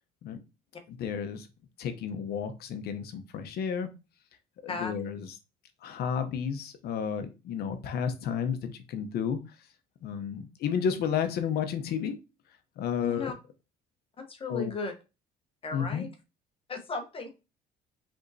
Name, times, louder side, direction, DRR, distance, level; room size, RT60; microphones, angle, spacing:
voice 1, 0.9-1.5 1.8-3.9 4.6-5.3 5.8-9.4 10.0-12.2 12.8-13.3 14.5-14.7 15.7-16.1, left 7 dB, 70° left, 9 dB, 0.9 m, -32 dB
voice 2, 13.0-13.3 14.2-14.9 15.6-16.1 16.7-17.3, left 3 dB, 35° left, 5 dB, 1.0 m, -35 dB
5.1 x 3.6 x 2.7 m, 0.29 s
cardioid pair, 110°, 17 cm